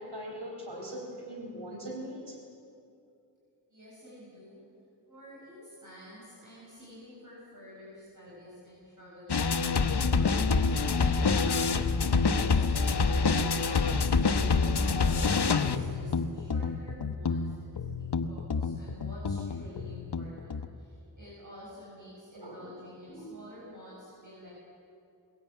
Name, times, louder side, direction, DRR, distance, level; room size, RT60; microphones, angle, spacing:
voice 1, 0.0-2.4 22.3-22.7 23.1-23.2, equal, 80° right, 0 dB, 4.5 m, -41 dB
voice 2, 3.7-4.6 5.0-24.5, left 1 dB, 50° right, -8 dB, 7.9 m, -49 dB
sound 1, 9.3-20.7, left 4 dB, 70° left, 1.0 m, -27 dB
21.5 x 16.5 x 9.2 m, 2.5 s
wide cardioid pair, 75°, 41 cm